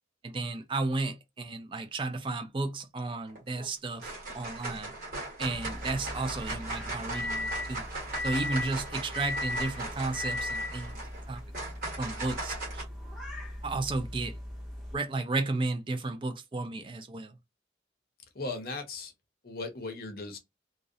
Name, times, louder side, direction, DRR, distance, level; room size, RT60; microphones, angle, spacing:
voice 1, 0.2-4.9 5.4-7.9 8.2-11.0 11.3-11.4 12.0-12.8 13.6-14.4 14.9-17.4, right 3 dB, 25° right, 0.4 m, -33 dB
sound 1, 3.3-3.7 4.0-12.8, right 2 dB, 45° right, 1.2 m, -39 dB
sound 2, 5.5-15.0, left 2 dB, ahead, 0.7 m, -38 dB
voice 2, 18.3-19.1 19.4-20.4, left 3 dB, 50° left, 0.6 m, -37 dB
2.4 x 2.0 x 2.6 m
head